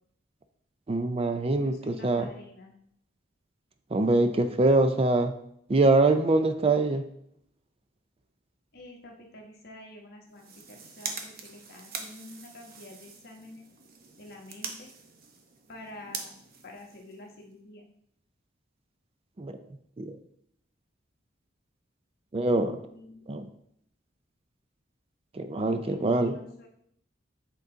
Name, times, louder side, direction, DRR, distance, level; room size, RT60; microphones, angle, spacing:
voice 1, 0.9-2.3 3.9-5.3 5.7-7.0 19.4-19.6 20.0-20.1 22.3-22.8 23.3-23.5 25.3-26.4, right 2 dB, 30° right, 8 dB, 0.4 m, -24 dB
voice 2, 1.5-2.8 8.7-13.6 14.2-14.9 15.7-16.3 16.6-17.8 22.9-23.2 25.8-26.7, left 1 dB, 50° left, 1 dB, 1.2 m, -48 dB
sound 1, 10.3-17.6, right 5 dB, 50° right, 0.8 m, -43 dB
7.8 x 3.8 x 3.9 m, 0.71 s
head